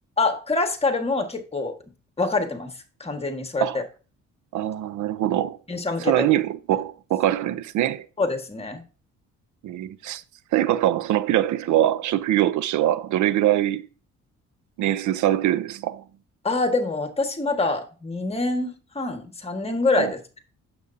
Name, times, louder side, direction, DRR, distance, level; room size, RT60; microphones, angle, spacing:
voice 1, 0.2-1.7 2.2-2.7 3.0-3.8 5.7-6.3 8.2-8.8 16.4-20.2, left 3 dB, 20° left, 1.5 m, -25 dB
voice 2, 4.5-5.6 6.0-8.1 9.6-10.2 10.5-13.9 14.8-16.0 19.9-20.1, right 12 dB, 75° right, 0.6 m, -23 dB
9.0 x 7.1 x 2.7 m
cardioid pair, 90°, 30 cm